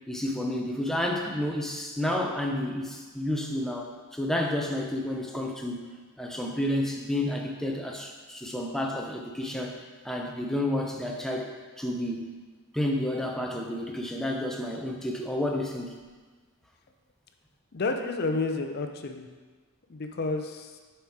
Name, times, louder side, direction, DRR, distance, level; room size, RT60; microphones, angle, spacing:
voice 1, 0.1-9.8 10.0-12.3 12.7-15.9, left 1 dB, ahead, 0 dB, 0.6 m, -30 dB
voice 2, 17.7-19.3 19.9-20.8, left 3 dB, 45° left, 5 dB, 0.5 m, -30 dB
6.9 x 4.3 x 4.8 m, 1.4 s
head